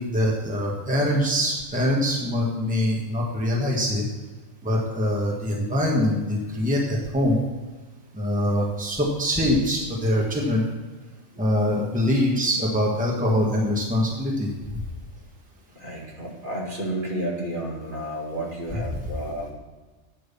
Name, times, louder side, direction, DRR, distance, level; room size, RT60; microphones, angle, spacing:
voice 1, 0.0-4.1 4.6-7.4 8.1-10.6 11.4-14.8, left 1 dB, 5° right, -3 dB, 1.6 m, -23 dB
voice 2, 15.8-19.5, right 1 dB, 40° right, -3 dB, 2.1 m, -31 dB
8.9 x 6.2 x 7.0 m, 1.3 s
omnidirectional pair, 1.4 m